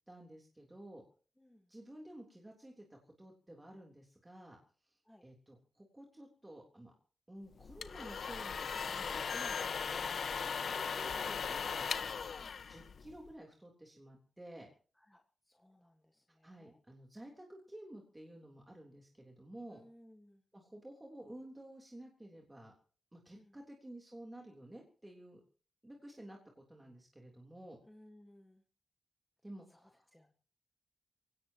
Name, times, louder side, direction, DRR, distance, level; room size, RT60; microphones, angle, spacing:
voice 1, 0.1-1.0 1.7-4.6 4.9-6.9 7.3-11.9 12.7-14.7 16.4-19.8 20.5-22.7 23.1-25.4 25.8-27.8 29.4-30.1, right 1 dB, 10° right, 0 dB, 3.5 m, -52 dB
voice 2, 1.4-1.7 5.0-5.3 12.4-12.6 15.0-16.8 19.7-20.4 23.3-23.6 27.9-28.6 29.7-30.3, left 1 dB, 5° left, 3 dB, 1.6 m, -62 dB
sound 1, 7.6-13.3, left 6 dB, 65° left, 1.2 m, -38 dB
25.5 x 17.5 x 3.0 m, 0.41 s
wide cardioid pair, 165°, 0 cm